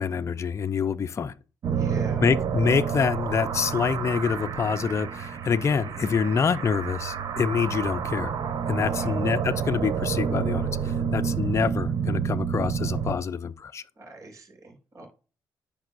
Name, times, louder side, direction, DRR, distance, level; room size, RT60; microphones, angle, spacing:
voice 1, 0.0-1.3 2.2-8.3 8.7-13.8, left 6 dB, 35° left, 0.5 m, -26 dB
sound 1, 1.6-13.1, right 7 dB, 60° right, 0.9 m, -29 dB
voice 2, 1.7-2.3 8.9-9.2 14.0-15.1, right 2 dB, 45° right, 4.4 m, -43 dB
10.5 x 5.4 x 2.6 m
cardioid pair, 85°, 8 cm